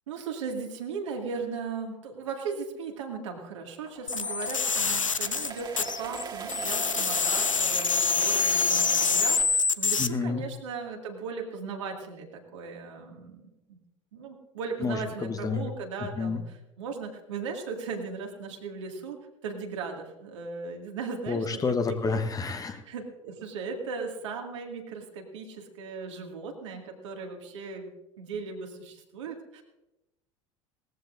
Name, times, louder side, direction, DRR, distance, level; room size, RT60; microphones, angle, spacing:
voice 1, 0.1-13.8 14.1-19.2 19.4-22.0 22.5-29.6, right 5 dB, 70° right, 1 dB, 2.2 m, -37 dB
sound 1, 3.8-9.4, right 5 dB, 30° right, 1.8 m, -39 dB
sound 2, 4.1-6.2 6.5-10.1, left 4 dB, 85° left, 0.5 m, -26 dB
voice 2, 10.0-10.4 14.8-15.6 16.2-16.4 21.3-22.8, left 4 dB, 20° left, 8 dB, 1.1 m, -29 dB
19.0 x 14.5 x 2.6 m, 0.93 s
figure-of-eight pair, 65°, 16 cm